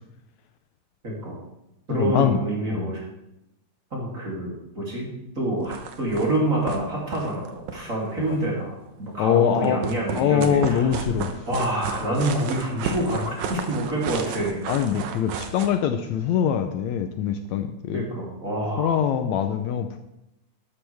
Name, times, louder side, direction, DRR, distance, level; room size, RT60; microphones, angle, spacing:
voice 1, 1.0-1.4 1.9-3.0 3.9-5.1 5.4-11.0 11.5-14.6 17.9-19.0, right 1 dB, 25° right, -4 dB, 3.0 m, -27 dB
voice 2, 1.9-2.4 2.7-2.9 9.2-9.8 10.2-11.3 14.7-18.1 18.8-20.0, left 9 dB, 75° left, 7 dB, 1.8 m, -23 dB
sound 1, 5.6-6.4 6.7-6.8 7.0-8.4 9.6-15.7, right 6 dB, 75° right, 2.4 m, -32 dB
12.5 x 12.0 x 3.5 m, 0.88 s
omnidirectional pair, 3.5 m